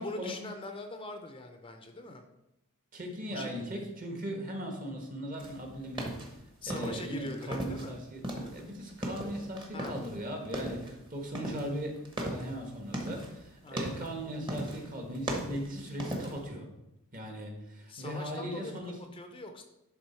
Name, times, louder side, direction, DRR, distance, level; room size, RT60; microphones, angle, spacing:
voice 1, 0.0-2.2 3.3-3.8 6.6-8.0 9.7-10.0 13.6-14.0 17.9-19.6, left 2 dB, 25° left, 5 dB, 0.6 m, -42 dB
voice 2, 2.9-6.1 6.6-16.7 17.1-18.9, equal, 40° right, 2 dB, 1.5 m, -39 dB
sound 1, 5.4-7.9 8.2-10.2 10.5-10.9 11.3-13.3 13.7-14.2 14.5-14.9 15.1-16.5, right 1 dB, 20° right, 1.1 m, -37 dB
11.0 x 3.7 x 4.4 m, 0.89 s
head